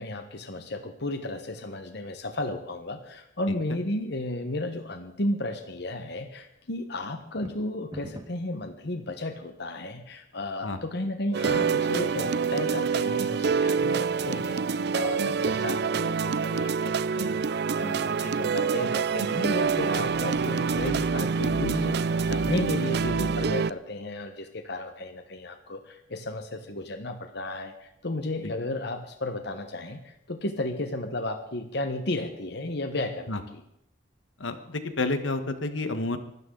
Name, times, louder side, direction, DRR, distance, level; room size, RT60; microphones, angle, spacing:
voice 1, 0.0-33.6, left 2 dB, 60° left, 7 dB, 1.3 m, -33 dB
sound 1, 7.2-8.5, right 1 dB, 20° right, 1.3 m, -42 dB
sound 2, 11.3-23.7, right 5 dB, 55° right, 0.5 m, -26 dB
voice 2, 34.4-36.2, left 2 dB, 80° left, 9 dB, 1.5 m, -30 dB
24.5 x 13.0 x 4.0 m, 0.79 s
head